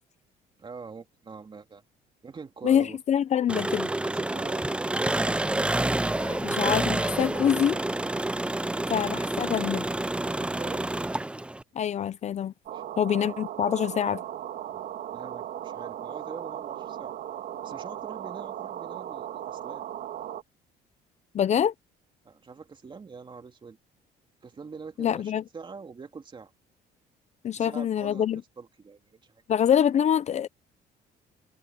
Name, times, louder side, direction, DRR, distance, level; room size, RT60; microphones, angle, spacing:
voice 1, 0.6-1.8 2.2-3.0 4.0-4.8 10.2-10.8 12.7-12.8 14.7-14.8 15.1-17.1 17.6-19.9 22.2-23.8 24.4-26.5 27.5-29.4, right 5 dB, 30° right, 2.7 m, -43 dB
voice 2, 2.6-3.9 6.2-7.8 8.9-9.8 11.8-12.5 13.0-14.2 21.3-21.7 25.0-25.4 27.4-28.4 29.5-30.5, left 9 dB, 40° left, 0.6 m, -25 dB
Engine, 3.5-11.6, right 2 dB, 5° right, 0.5 m, -28 dB
sound 1, 12.7-20.4, right 11 dB, 65° right, 2.1 m, -37 dB
cardioid pair, 110°, 17 cm